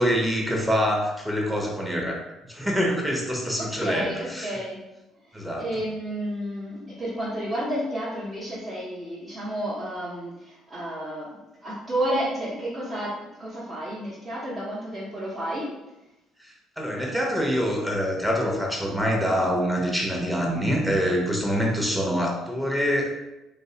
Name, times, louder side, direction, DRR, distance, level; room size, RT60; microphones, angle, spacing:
voice 1, 0.0-2.2 2.5-4.6 5.3-5.7 16.4-23.1, equal, 5° right, -1 dB, 0.7 m, -25 dB
voice 2, 3.6-4.8 5.3-11.3 11.6-13.1 13.4-15.7, right 1 dB, 35° right, -10 dB, 0.9 m, -31 dB
2.6 x 2.0 x 2.7 m, 0.96 s
supercardioid pair, 65°, 0 cm